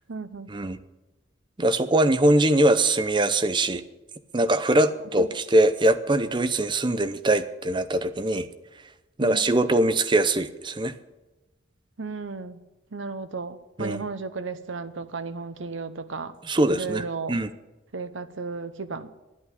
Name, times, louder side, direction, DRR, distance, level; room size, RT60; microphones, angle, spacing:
voice 1, 0.1-0.5 5.2-5.3 9.2-9.5 12.0-12.6 12.9-16.3 16.7-17.4 17.9-19.1, right 4 dB, 85° right, 11 dB, 0.9 m, -34 dB
voice 2, 1.6-3.8 4.3-8.5 9.2-10.9 13.8-14.0 16.5-17.5, right 1 dB, 25° right, 11 dB, 0.7 m, -22 dB
11.0 x 8.6 x 9.6 m, 1.1 s
head